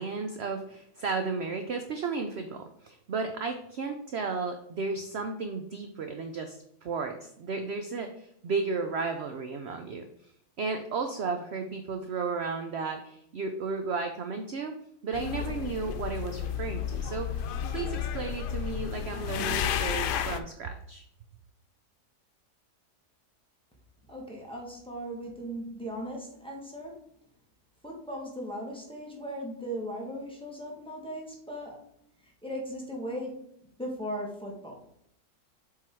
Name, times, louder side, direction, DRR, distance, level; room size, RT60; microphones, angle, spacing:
voice 1, 0.0-10.0 10.6-14.7 15.0-17.4 17.7-21.0, right 4 dB, 60° right, 5 dB, 0.7 m, -34 dB
sound 1, 15.1-20.4, left 9 dB, 90° left, 1.2 m, -32 dB
voice 2, 24.1-27.0 27.8-31.8 32.4-33.5 33.8-34.8, equal, 5° left, -2 dB, 1.5 m, -38 dB
7.4 x 3.9 x 4.5 m, 0.73 s
omnidirectional pair, 1.7 m